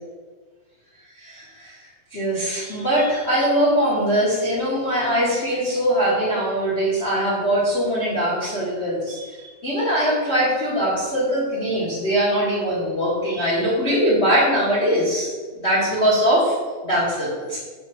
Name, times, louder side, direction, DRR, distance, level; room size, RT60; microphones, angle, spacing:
voice 1, 1.1-1.8 2.1-16.5 16.8-17.6, equal, 50° left, -9 dB, 0.7 m, -22 dB
7.5 x 2.5 x 5.6 m, 1.4 s
omnidirectional pair, 3.6 m